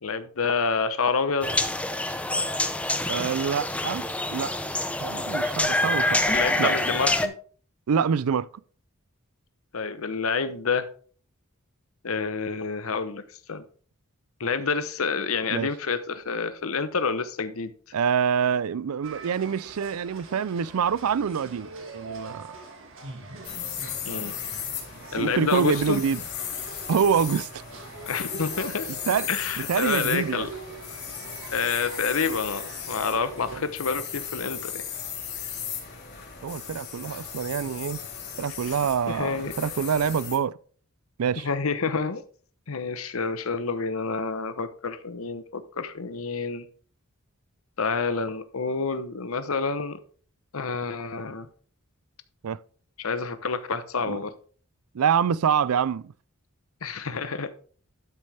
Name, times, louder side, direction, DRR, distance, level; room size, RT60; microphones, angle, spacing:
voice 1, 0.0-1.5 6.3-7.3 9.7-10.9 12.0-13.2 13.5-13.6 14.4-17.7 24.0-24.3 25.1-26.0 28.1-28.9 29.3-30.5 31.5-34.8 39.1-39.5 41.4-42.2 42.7-46.7 47.8-50.0 50.5-51.5 53.0-54.3 56.8-57.5, left 4 dB, 75° left, 0.9 m, -28 dB
sound 1, 1.4-7.3, left 1 dB, 5° left, 0.6 m, -26 dB
voice 2, 3.1-4.6 5.0-6.2 6.6-6.7 7.9-8.5 15.5-15.7 17.9-22.5 25.2-26.2 26.9-27.6 29.1-29.3 29.6-30.5 33.5-33.6 36.4-38.0 38.4-40.6 41.2-41.5 52.4-52.6 54.0-54.2 54.9-56.1, right 7 dB, 85° right, 0.4 m, -26 dB
sound 2, 19.0-33.6, right 3 dB, 65° right, 1.8 m, -43 dB
sound 3, 23.4-40.4, left 8 dB, 55° left, 3.6 m, -36 dB
12.0 x 6.4 x 3.4 m
head